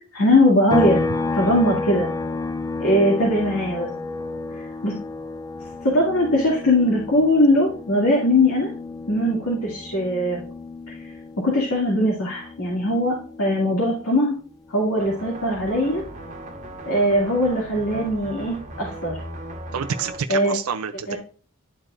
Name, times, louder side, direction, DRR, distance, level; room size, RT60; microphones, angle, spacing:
voice 1, 0.1-1.0 1.3-2.1 2.8-3.9 4.5-4.9 5.8-8.7 9.1-10.4 11.4-14.4 14.7-16.0 16.9-19.2 20.3-20.5 21.1-21.2, left 1 dB, 85° left, -4 dB, 2.4 m, -20 dB
sound 1, 0.7-14.3 14.6-16.8, left 3 dB, 15° left, 0.5 m, -31 dB
sound 2, 15.0-20.2, right 1 dB, 35° right, 1.3 m, -37 dB
voice 2, 19.7-21.1, right 6 dB, 80° right, 9 dB, 0.5 m, -28 dB
11.5 x 4.5 x 2.5 m, 0.41 s
head